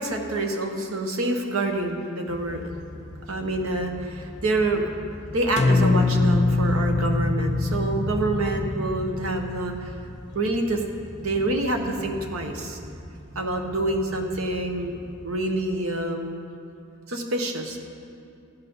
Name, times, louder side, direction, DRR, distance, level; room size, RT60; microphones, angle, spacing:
voice 1, 0.0-2.7 3.3-4.9 5.3-9.9 10.3-10.8 11.2-12.8 13.3-16.4 17.1-17.8, right 2 dB, 90° right, 3 dB, 1.1 m, -27 dB
sound 1, 2.3-16.1, left 1 dB, 20° right, 1.0 m, -37 dB
sound 2, 5.6-9.8, left 3 dB, 35° left, 0.4 m, -23 dB
15.5 x 5.8 x 5.4 m, 2.5 s
head